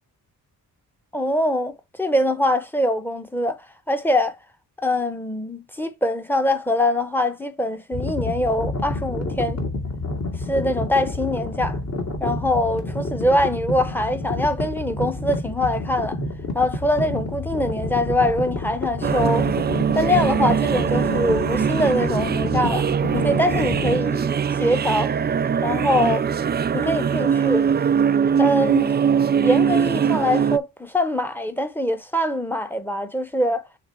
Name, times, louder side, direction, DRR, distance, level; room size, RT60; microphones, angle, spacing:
voice 1, 1.1-3.6 3.9-4.3 4.8-9.6 10.5-11.8 12.2-16.2 16.5-19.5 19.9-22.9 23.1-25.1 25.6-26.2 26.7-27.7 28.4-28.9 29.4-33.7, left 1 dB, 5° left, 1.0 m, -23 dB
sound 1, 7.9-24.0, left 2 dB, 40° left, 2.1 m, -29 dB
sound 2, 19.0-30.6, right 7 dB, 25° right, 0.3 m, -21 dB
5.9 x 3.7 x 4.4 m
cardioid pair, 85°, 39 cm